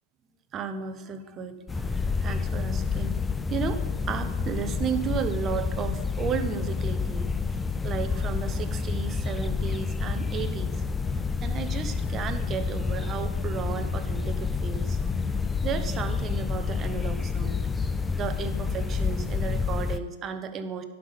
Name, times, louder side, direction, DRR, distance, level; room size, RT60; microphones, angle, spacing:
voice 1, 0.5-3.1 3.5-7.3 7.8-10.8 11.4-15.0 15.6-17.6 18.1-20.8, right 7 dB, 30° right, 9 dB, 0.8 m, -34 dB
sound 1, 1.7-20.0, left 5 dB, 10° left, 0.4 m, -29 dB
10.5 x 5.6 x 5.3 m, 1.2 s
hypercardioid pair, 120°, 0 cm